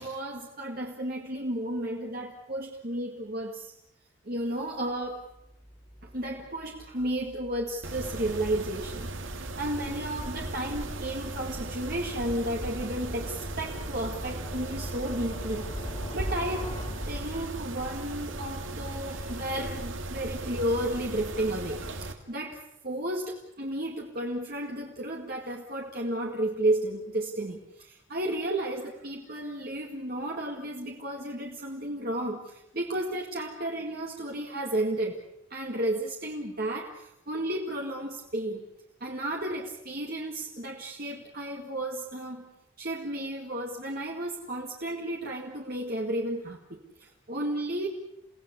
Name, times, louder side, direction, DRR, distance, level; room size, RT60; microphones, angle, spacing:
voice 1, 0.0-3.7 4.2-5.3 6.0-15.8 16.1-16.7 17.1-38.7 39.0-42.5 42.8-47.9, right 1 dB, 45° right, 0 dB, 2.1 m, -33 dB
sound 1, 5.0-18.0, equal, 25° left, 2.7 m, -43 dB
Mechanisms, 7.8-22.1, right 2 dB, 75° right, 2.3 m, -37 dB
30.0 x 17.5 x 8.4 m, 0.83 s
head